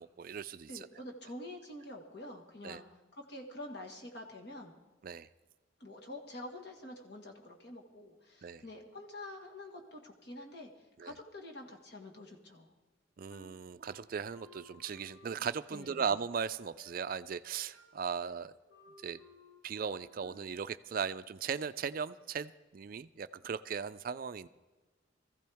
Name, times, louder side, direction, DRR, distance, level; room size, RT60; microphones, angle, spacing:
voice 1, 0.0-0.9 2.6-2.8 5.0-5.3 8.4-8.6 11.0-11.1 13.2-18.5 19.0-19.2 19.6-24.5, right 6 dB, 45° right, 14 dB, 0.3 m, -38 dB
voice 2, 0.7-2.8 3.1-4.7 5.8-10.7 11.0-12.7 15.7-16.0, left 1 dB, 55° left, 1 dB, 1.7 m, -47 dB
Wind instrument woodwind instrument, 13.3-20.7, left 1 dB, 75° left, 2.5 m, -59 dB
20.0 x 14.5 x 3.5 m, 1.2 s
head